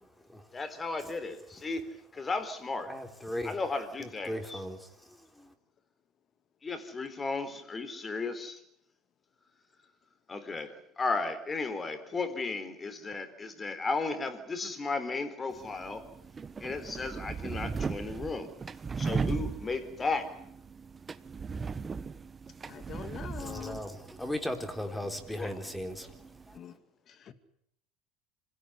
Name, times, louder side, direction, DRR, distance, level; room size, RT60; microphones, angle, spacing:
voice 1, 0.0-0.5 2.9-3.6 4.0-5.5 22.8-22.9 23.3-26.8, left 1 dB, 5° left, 3.8 m, -38 dB
voice 2, 0.5-1.8 2.1-2.9 3.4-4.6 6.6-8.6 10.3-16.0 16.6-18.5 19.0-20.3 25.4-25.5, left 3 dB, 25° left, 4.0 m, -34 dB
sound 1, 15.5-26.6, right 5 dB, 25° right, 1.2 m, -38 dB
voice 3, 22.7-23.8 26.5-26.8 27.1-27.3, left 8 dB, 45° left, 2.3 m, -43 dB
26.5 x 17.0 x 9.9 m
supercardioid pair, 100°, 0 cm